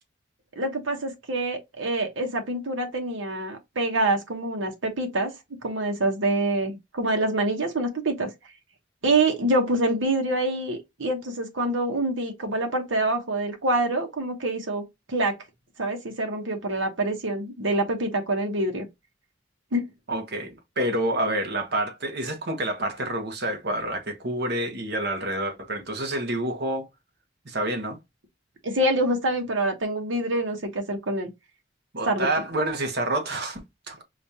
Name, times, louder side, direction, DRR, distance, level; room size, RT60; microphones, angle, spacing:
voice 1, 0.6-8.3 9.0-15.3 15.8-18.9 19.7-19.8 28.6-31.3 32.1-32.3, right 2 dB, 90° right, 1.0 m, -26 dB
voice 2, 20.1-26.9 27.4-28.0 31.9-34.0, right 1 dB, 60° right, 1.0 m, -28 dB
5.0 x 2.4 x 2.7 m
head